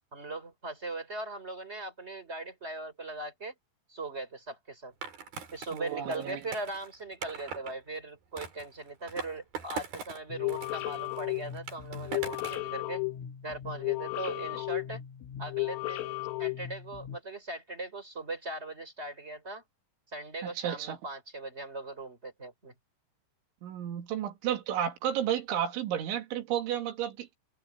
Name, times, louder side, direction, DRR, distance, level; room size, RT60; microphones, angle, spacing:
voice 1, 0.1-3.5 3.9-4.9 5.5-13.0 13.4-15.0 15.4-19.6 20.1-22.7, right 2 dB, 15° right, 2.6 m, -39 dB
Skateboard, 5.0-7.7 8.4-10.2 10.5-12.7, right 5 dB, 50° right, 5.5 m, -42 dB
voice 2, 5.7-6.4 20.4-21.0 23.6-27.3, right 10 dB, 70° right, 4.6 m, -32 dB
sound 1, 10.3-17.2, left 17 dB, 80° left, 4.0 m, -35 dB
omnidirectional pair, 5.8 m